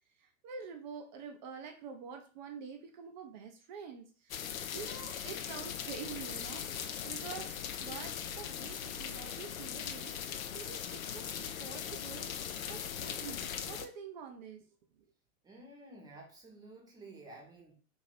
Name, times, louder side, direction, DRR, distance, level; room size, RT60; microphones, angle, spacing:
voice 1, 0.2-4.5 4.7-10.2 10.5-14.6, right 6 dB, 35° right, 4 dB, 0.5 m, -47 dB
sound 1, 4.3-13.8, left 9 dB, 75° left, 0.5 m, -40 dB
voice 2, 15.4-17.8, right 2 dB, 10° right, -1 dB, 0.8 m, -52 dB
2.7 x 2.6 x 3.2 m, 0.38 s
figure-of-eight pair, 105°, 41 cm